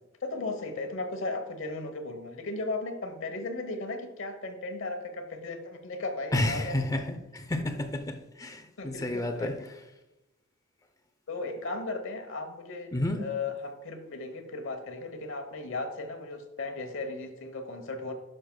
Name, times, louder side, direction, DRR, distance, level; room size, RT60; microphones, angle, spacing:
voice 1, 0.2-7.0 8.8-9.7 11.3-18.1, left 3 dB, 65° left, 6 dB, 1.0 m, -36 dB
voice 2, 6.3-9.5 12.9-13.2, left 1 dB, 15° left, 5 dB, 0.6 m, -30 dB
10.5 x 6.5 x 2.3 m, 0.98 s
head